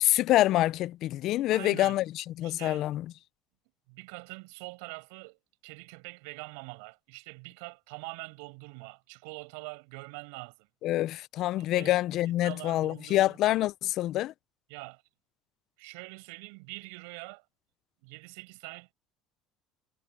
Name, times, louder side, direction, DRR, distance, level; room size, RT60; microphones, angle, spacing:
voice 1, 0.0-3.0 10.8-14.3, left 15 dB, 60° left, 0.5 m, -26 dB
voice 2, 1.5-2.0 2.4-2.9 3.9-10.7 11.8-13.6 14.7-15.0 15.8-17.4 18.0-18.9, right 31 dB, 85° right, 6.5 m, -44 dB
supercardioid pair, 105°, 0 cm